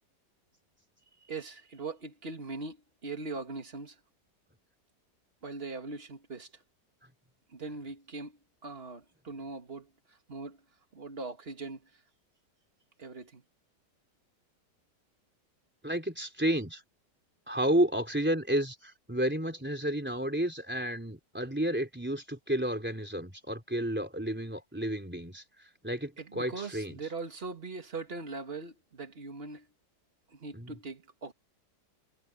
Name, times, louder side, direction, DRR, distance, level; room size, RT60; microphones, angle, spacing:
voice 1, 1.2-4.0 5.4-6.6 7.5-10.6 10.9-11.9 13.0-13.4 26.2-29.7 30.3-31.3, right 3 dB, 35° right, 2.2 m, -41 dB
voice 2, 15.8-16.8 17.5-25.4 25.8-27.0 30.5-30.8, right 1 dB, 5° right, 3.6 m, -31 dB
omnidirectional pair, 1.9 m